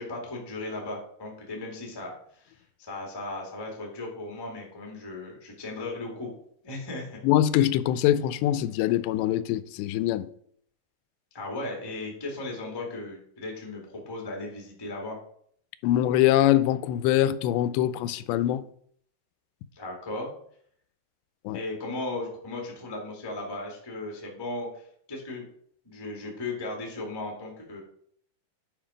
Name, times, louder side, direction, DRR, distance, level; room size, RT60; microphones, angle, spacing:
voice 1, 0.0-6.3 6.6-7.2 11.3-15.2 19.7-20.3 21.5-25.4 25.8-27.8, left 2 dB, 20° left, 0.6 m, -36 dB
voice 2, 7.2-10.3 15.8-18.6 21.5-21.6, left 12 dB, 85° left, 2.8 m, -23 dB
10.5 x 5.4 x 5.0 m
omnidirectional pair, 4.9 m